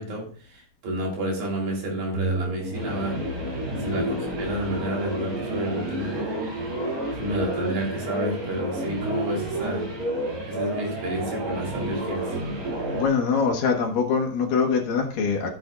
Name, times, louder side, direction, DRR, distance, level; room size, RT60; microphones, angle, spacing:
voice 1, 0.0-3.2 3.8-6.4 6.8-9.9 10.5-12.4, right 1 dB, 70° right, -1 dB, 4.8 m, -30 dB
sound 1, 2.1-13.1, right 1 dB, 30° right, 1.8 m, -30 dB
voice 2, 12.9-15.5, left 5 dB, 70° left, 2 dB, 2.9 m, -24 dB
16.0 x 8.0 x 2.3 m, 0.41 s
omnidirectional pair, 4.4 m